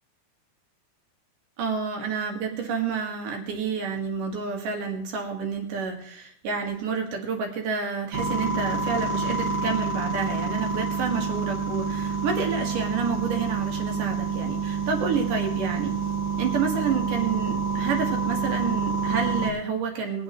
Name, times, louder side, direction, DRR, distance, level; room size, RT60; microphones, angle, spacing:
voice 1, 1.6-15.9 16.4-20.2, right 5 dB, 85° right, 2 dB, 3.5 m, -29 dB
sound 1, 8.1-19.5, right 5 dB, 60° right, 2.8 m, -28 dB
21.0 x 9.1 x 3.1 m, 0.65 s
omnidirectional pair, 3.7 m